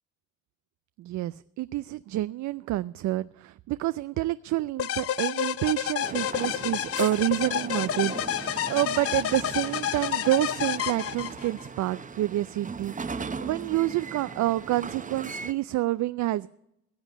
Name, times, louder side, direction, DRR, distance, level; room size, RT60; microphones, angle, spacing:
voice 1, 1.0-16.5, right 16 dB, 70° right, 15 dB, 0.5 m, -28 dB
sound 1, 4.8-11.7, left 10 dB, 50° left, 0.5 m, -30 dB
sound 2, 6.0-15.5, right 4 dB, 25° right, 0.9 m, -39 dB
16.5 x 7.2 x 9.8 m, 0.81 s
cardioid pair, 90°, 30 cm